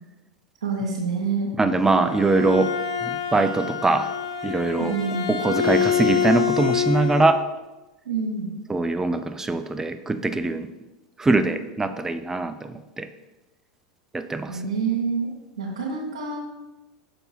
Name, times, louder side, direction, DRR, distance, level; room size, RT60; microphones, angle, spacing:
voice 1, 0.6-1.5 4.8-5.3 8.0-8.5 14.5-15.3 15.6-16.4, right 5 dB, 90° right, -5 dB, 1.2 m, -27 dB
voice 2, 1.6-2.7 3.0-4.1 4.4-5.0 5.3-7.4 8.7-10.7 11.2-13.1 14.1-14.6, right 3 dB, 15° right, 10 dB, 0.5 m, -22 dB
Bowed string instrument, 1.8-7.4, left 8 dB, 75° left, 0.9 m, -26 dB
6.6 x 4.4 x 4.2 m, 1.1 s
hypercardioid pair, 95°, 3 cm